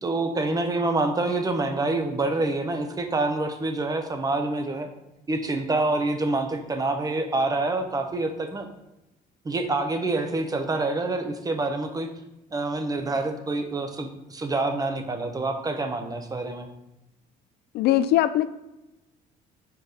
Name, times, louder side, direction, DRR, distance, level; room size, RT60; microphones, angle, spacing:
voice 1, 0.0-4.9 5.3-8.7 9.4-12.1 12.5-16.7, right 2 dB, 20° right, 6 dB, 0.8 m, -27 dB
voice 2, 17.7-18.5, left 13 dB, 75° left, 13 dB, 0.4 m, -20 dB
4.7 x 4.6 x 5.0 m, 0.94 s
cardioid pair, 110°, 17 cm